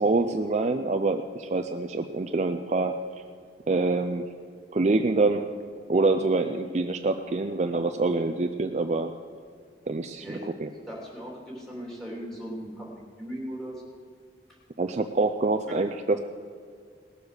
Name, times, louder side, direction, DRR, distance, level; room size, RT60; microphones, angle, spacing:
voice 1, 0.0-2.9 3.7-4.2 4.7-5.5 5.9-9.1 9.9-10.7 14.8-16.2, right 3 dB, 40° right, 6 dB, 0.4 m, -25 dB
voice 2, 10.2-10.5 10.9-14.0, equal, 5° left, -3 dB, 2.8 m, -38 dB
19.0 x 7.2 x 6.5 m, 2.1 s
head